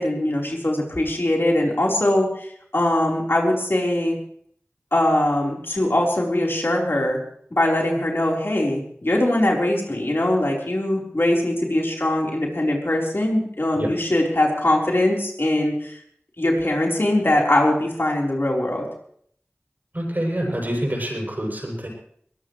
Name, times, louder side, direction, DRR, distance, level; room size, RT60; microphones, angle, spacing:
voice 1, 0.0-2.5 2.7-4.2 4.9-7.2 7.5-16.0 16.4-18.9, left 1 dB, 60° left, -1 dB, 4.1 m, -21 dB
voice 2, 19.9-21.9, right 1 dB, 45° right, -1 dB, 7.7 m, -26 dB
22.0 x 19.5 x 3.2 m, 0.64 s
wide cardioid pair, 40°, 4 cm